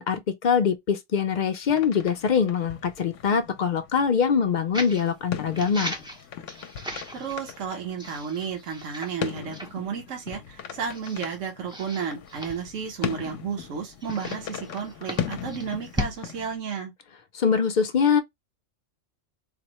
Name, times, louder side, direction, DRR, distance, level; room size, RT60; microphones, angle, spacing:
voice 1, 0.0-5.9 17.3-18.2, left 6 dB, 55° left, 0.5 m, -23 dB
sound 1, 1.6-16.6, left 9 dB, 75° left, 0.9 m, -38 dB
sound 2, 4.7-5.1 5.6-7.6 8.0-9.3 9.5-9.7 10.3-10.4 10.9-11.3 11.7-13.4 14.0-16.2, equal, 5° right, 0.5 m, -37 dB
voice 2, 7.1-16.9, right 6 dB, 70° right, 1.3 m, -32 dB
4.0 x 2.1 x 2.9 m
omnidirectional pair, 1.3 m